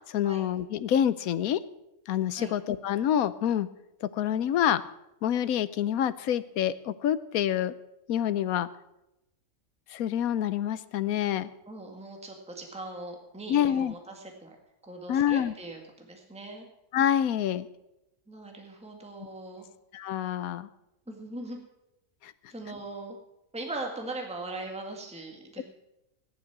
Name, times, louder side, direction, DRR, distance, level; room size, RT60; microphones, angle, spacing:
voice 1, 0.1-1.6 2.1-3.7 4.0-4.8 5.2-7.7 8.1-8.7 9.9-11.5 13.5-13.9 15.1-15.5 16.9-17.7 19.9-20.7 22.2-22.3 25.6-25.7, left 10 dB, 85° left, 15 dB, 1.1 m, -27 dB
voice 2, 11.7-14.6 14.8-16.7 18.3-19.7 21.1-21.6 22.5-23.2 23.5-25.6, right 2 dB, 5° right, 2 dB, 1.7 m, -40 dB
14.5 x 11.0 x 6.0 m, 0.89 s
omnidirectional pair, 1.5 m